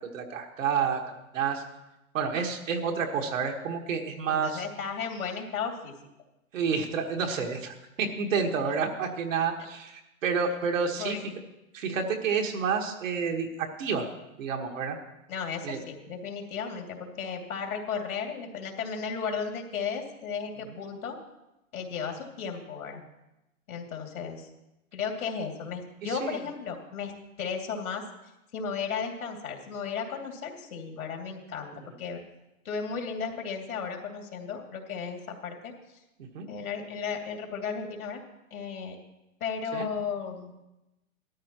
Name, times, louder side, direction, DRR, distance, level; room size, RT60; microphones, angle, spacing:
voice 1, 0.1-1.0 1.3-1.6 2.1-4.6 6.5-11.2 11.7-14.1 14.4-15.0 15.6-15.8 26.0-26.4 36.3-36.5 39.7-39.9, right 6 dB, 65° right, 2 dB, 1.6 m, -29 dB
voice 2, 4.3-5.9 11.0-11.2 15.3-21.2 21.7-23.0 23.7-24.5 24.9-27.1 27.4-28.0 28.5-32.2 32.6-35.7 36.5-38.2 38.5-39.0 39.4-40.5, left 6 dB, 80° left, 2 dB, 2.6 m, -34 dB
17.0 x 13.0 x 3.0 m, 0.94 s
hypercardioid pair, 160°, 43 cm